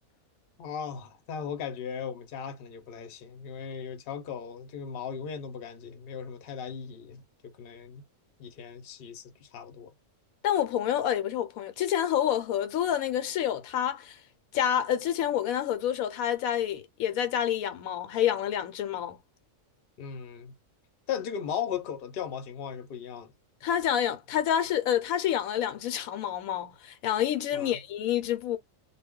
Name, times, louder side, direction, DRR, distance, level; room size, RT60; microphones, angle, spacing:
voice 1, 0.6-7.2 7.6-8.0 8.4-9.9 20.0-20.5 21.1-23.3 27.5-27.8, left 7 dB, 55° left, 0.8 m, -37 dB
voice 2, 10.4-14.2 14.5-19.2 23.6-28.6, left 10 dB, 80° left, 1.0 m, -28 dB
2.3 x 2.1 x 3.5 m
omnidirectional pair, 1.4 m